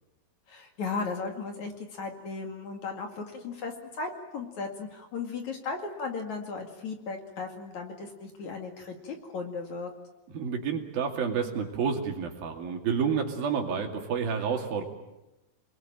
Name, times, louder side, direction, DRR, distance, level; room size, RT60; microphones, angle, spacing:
voice 1, 0.5-9.9, left 4 dB, 50° left, 4 dB, 3.3 m, -36 dB
voice 2, 10.3-14.8, right 6 dB, 70° right, 3 dB, 4.3 m, -29 dB
28.0 x 21.5 x 9.0 m, 0.99 s
omnidirectional pair, 4.5 m